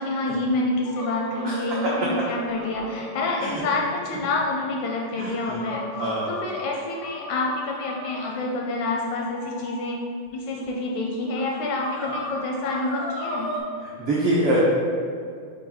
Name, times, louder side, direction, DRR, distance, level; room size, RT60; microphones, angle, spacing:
voice 1, 0.0-10.0 10.3-13.5, left 2 dB, 80° left, -1 dB, 1.7 m, -28 dB
sound 1, 0.8-3.8 4.2-4.3 4.8-5.0 5.6-8.3 9.3-9.9 10.6-10.7 11.4-11.5 11.8-13.6, equal, 65° left, 0.7 m, -36 dB
voice 2, 5.2-5.6 6.0-6.3 14.0-14.7, right 1 dB, 80° right, -6 dB, 1.2 m, -23 dB
6.0 x 4.5 x 3.9 m, 2.3 s
omnidirectional pair, 3.7 m